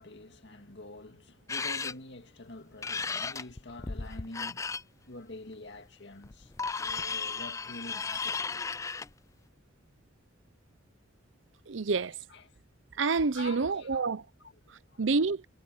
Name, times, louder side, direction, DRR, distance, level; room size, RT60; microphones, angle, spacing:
voice 1, 0.0-4.6 5.1-8.7 12.3-12.5 13.3-14.1 14.4-15.1, left 2 dB, 65° left, 2.1 m, -47 dB
sound 1, 1.5-1.9 2.8-4.8 6.2-9.1, left 5 dB, 15° left, 0.3 m, -34 dB
voice 2, 11.7-12.1 13.0-14.2 15.0-15.4, right 4 dB, 75° right, 0.7 m, -28 dB
head